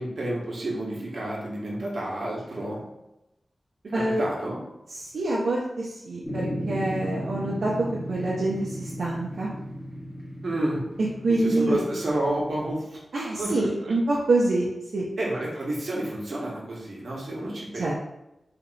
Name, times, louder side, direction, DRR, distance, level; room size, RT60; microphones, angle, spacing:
voice 1, 0.0-2.9 3.9-4.6 10.4-10.8 11.3-13.0 13.4-13.9 15.2-17.9, right 1 dB, 65° right, -4 dB, 1.3 m, -30 dB
voice 2, 3.9-4.2 4.9-7.7 8.1-9.5 11.0-11.8 13.1-14.7 14.9-15.0 17.7-17.9, right 2 dB, 80° right, -6 dB, 0.7 m, -26 dB
sound 1, 6.2-12.7, equal, 15° left, 1.4 m, -35 dB
3.3 x 2.9 x 3.9 m, 0.89 s
wide cardioid pair, 105°, 0 cm